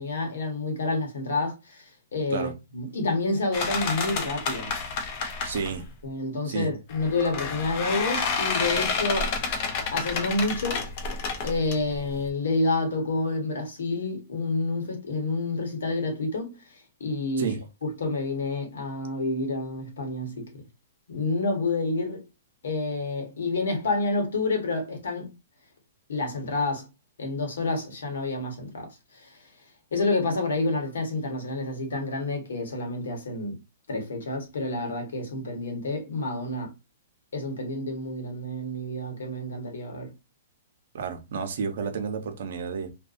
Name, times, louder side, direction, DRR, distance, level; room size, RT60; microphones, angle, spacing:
voice 1, 0.0-4.7 6.0-9.3 9.9-10.9 11.4-20.6 21.1-22.2 22.6-25.3 26.1-26.9 27.2-29.5 29.9-33.6 33.9-36.7 37.3-40.1, left 2 dB, 85° left, 1.1 m, -29 dB
sound 1, 3.5-5.9 6.9-12.3, left 4 dB, 45° left, 0.6 m, -30 dB
voice 2, 5.4-5.9 6.4-6.7 17.4-17.6 40.9-42.9, right 5 dB, 65° right, 0.6 m, -31 dB
2.6 x 2.2 x 2.5 m
hypercardioid pair, 150°, 0 cm